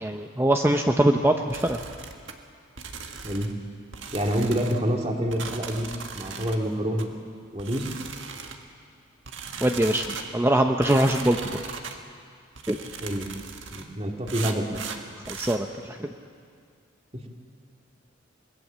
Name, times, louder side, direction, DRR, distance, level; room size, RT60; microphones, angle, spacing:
voice 1, 0.0-1.8 9.6-10.1 10.3-11.6 12.7-12.8 15.3-16.1, right 1 dB, 10° right, 4 dB, 0.7 m, -22 dB
sound 1, 1.5-2.3 2.8-3.6 3.9-4.8 5.3-6.6 7.0-7.1 7.6-8.6 9.3-10.3 10.8-12.0 12.6-13.9 14.3-15.6, right 5 dB, 70° right, 1.7 m, -38 dB
voice 2, 4.1-5.9 6.1-7.1 7.5-7.9 13.0-13.3 13.7-14.7 17.1-17.3, equal, 30° right, 1 dB, 2.3 m, -27 dB
25.5 x 20.5 x 7.5 m, 2.2 s
head